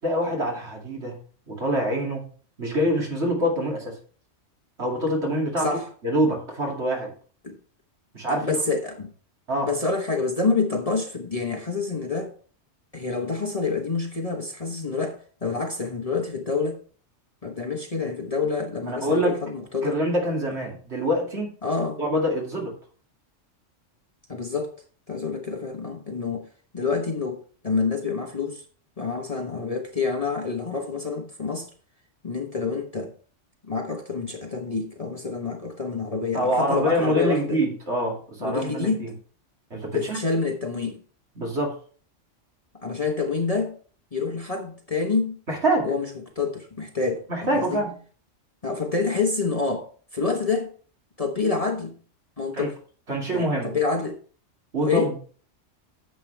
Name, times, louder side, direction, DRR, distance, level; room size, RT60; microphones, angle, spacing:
voice 1, 0.0-1.2 1.5-2.2 2.6-4.0 4.8-5.7 6.0-7.1 8.1-8.5 9.5-9.7 18.9-19.4 19.8-21.5 22.0-22.8 36.3-39.1 39.7-40.2 41.4-41.8 45.5-45.9 47.3-47.9 52.5-52.7 53.1-53.7 54.7-55.2, equal, 60° right, 2.8 m, -25 dB
voice 2, 5.6-5.9 7.4-7.6 8.3-9.1 9.6-12.3 12.9-16.8 17.4-20.0 20.5-20.6 21.6-22.0 24.3-24.7 25.1-26.5 26.7-28.6 29.0-31.7 32.2-33.1 33.6-37.6 38.4-39.1 39.9-41.0 42.8-43.8 44.1-45.4 45.8-46.1 46.4-47.8 48.6-50.7 51.2-51.9 52.4-52.8 53.3-54.2 54.8-55.1, left 4 dB, 30° left, 1.1 m, -27 dB
9.8 x 7.7 x 3.4 m
omnidirectional pair, 1.3 m